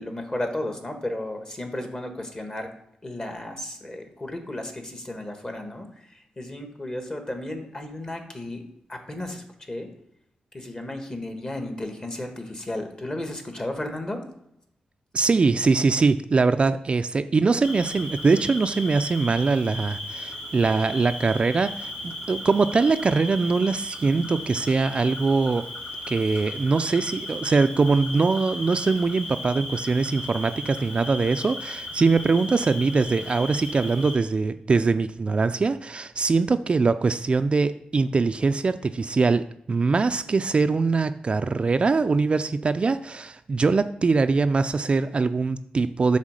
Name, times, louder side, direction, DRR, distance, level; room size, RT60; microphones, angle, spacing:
voice 1, 0.0-2.7 3.0-8.6 8.9-9.9 10.5-14.2, left 1 dB, 30° left, 5 dB, 1.4 m, -34 dB
voice 2, 15.1-25.7 26.1-46.2, right 4 dB, 40° right, 10 dB, 0.3 m, -22 dB
Cricket, 17.6-34.2, left 1 dB, 90° left, 2.7 m, -36 dB
7.4 x 3.6 x 6.4 m, 0.78 s
cardioid pair, 85°, 3 cm